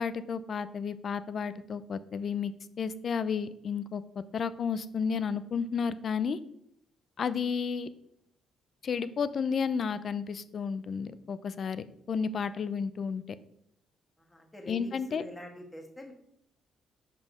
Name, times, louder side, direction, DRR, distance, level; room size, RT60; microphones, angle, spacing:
voice 1, 0.0-4.0 4.3-6.4 7.2-7.9 8.8-13.2 14.7-15.2, left 6 dB, 50° left, 14 dB, 0.5 m, -32 dB
voice 2, 14.3-16.1, left 1 dB, 15° left, 2 dB, 1.9 m, -45 dB
5.5 x 5.2 x 6.3 m, 0.72 s
cardioid pair, 90°, 0 cm